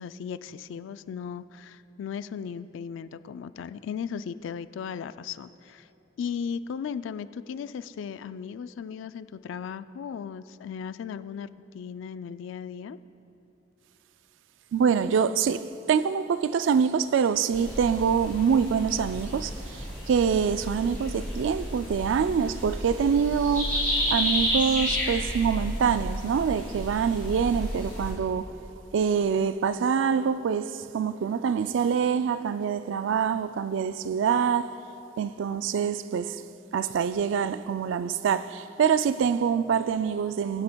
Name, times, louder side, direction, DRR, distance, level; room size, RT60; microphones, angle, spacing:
voice 1, 0.0-5.9 6.2-11.5 11.7-13.0, left 7 dB, 80° left, 0.3 m, -36 dB
voice 2, 14.7-23.7 24.1-28.5 28.9-34.7 35.2-36.4 36.7-40.6, right 7 dB, 80° right, 0.3 m, -25 dB
sound 1, 17.5-28.1, equal, 10° left, 2.7 m, -31 dB
22.0 x 8.5 x 2.3 m
head